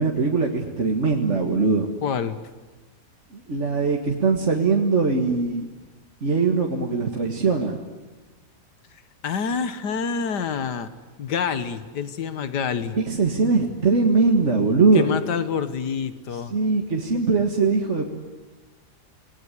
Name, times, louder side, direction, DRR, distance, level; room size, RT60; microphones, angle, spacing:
voice 1, 0.0-1.9 3.3-5.7 6.2-7.7 13.0-15.1 16.5-18.1, right 4 dB, 45° right, 1 dB, 2.1 m, -21 dB
voice 2, 2.0-2.4 9.2-10.9 11.2-13.0 14.9-16.5, left 6 dB, 85° left, 12 dB, 1.9 m, -27 dB
28.0 x 19.5 x 9.9 m, 1.3 s
omnidirectional pair, 1.8 m